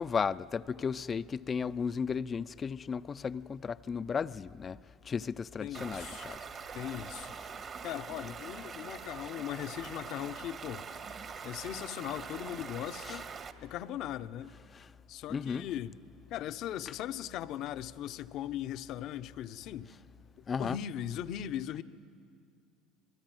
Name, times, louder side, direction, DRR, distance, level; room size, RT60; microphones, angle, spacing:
voice 1, 0.0-4.8 5.0-6.4 13.1-13.2 14.7-14.9 15.3-15.7 20.5-20.8, left 6 dB, 30° left, 14 dB, 0.6 m, -34 dB
voice 2, 5.6-6.3 6.7-7.4 7.8-10.9 11.4-13.3 13.6-14.5 15.1-16.0 16.3-19.9 20.6-21.8, left 11 dB, 60° left, 12 dB, 0.9 m, -39 dB
Stream, 5.7-13.5, right 6 dB, 40° right, 1.7 m, -44 dB
27.0 x 21.0 x 9.2 m, 2.3 s
supercardioid pair, 90°, 0 cm